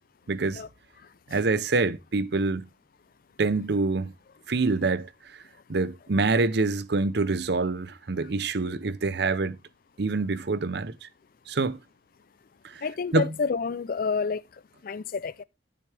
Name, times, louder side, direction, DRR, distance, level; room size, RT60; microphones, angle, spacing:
voice 1, 0.3-0.6 1.3-2.7 3.4-4.1 4.5-5.1 5.7-9.6 10.0-11.1 11.5-11.8 12.6-12.8 13.1-13.3, right 3 dB, 65° right, 0.7 m, -26 dB
voice 2, 12.8-14.4 14.8-15.4, left 5 dB, 50° left, 0.4 m, -29 dB
12.0 x 7.0 x 3.3 m
head